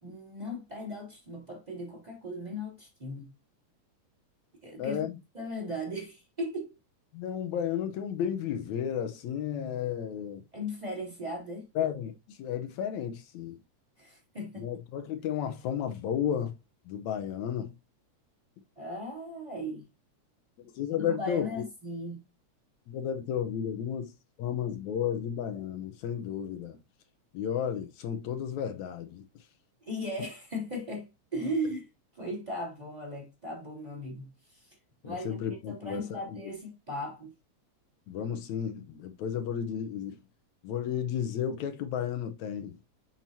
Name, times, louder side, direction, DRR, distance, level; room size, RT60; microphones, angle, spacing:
voice 1, 0.0-3.3 4.6-5.1 5.3-6.7 10.5-11.7 14.0-14.7 18.8-19.9 21.0-22.3 29.8-31.9 32.1-34.8 35.0-37.3, equal, 15° right, 2.9 m, -37 dB
voice 2, 4.8-5.2 7.1-10.4 11.8-13.6 14.6-16.5 16.9-17.7 20.6-21.6 22.9-24.1 24.4-26.8 27.3-29.3 35.0-36.4 38.1-40.2 40.6-42.8, left 9 dB, 75° left, 2.1 m, -33 dB
7.4 x 5.9 x 2.7 m
omnidirectional pair, 3.3 m